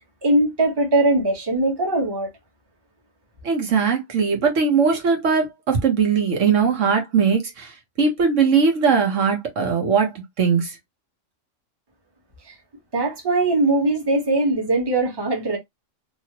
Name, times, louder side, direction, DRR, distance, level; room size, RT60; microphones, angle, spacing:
voice 1, 0.2-2.3 12.9-15.6, right 2 dB, 20° right, 1.0 m, -20 dB
voice 2, 3.4-10.8, right 5 dB, 70° right, 1.2 m, -20 dB
2.9 x 2.6 x 2.8 m
omnidirectional pair, 1.4 m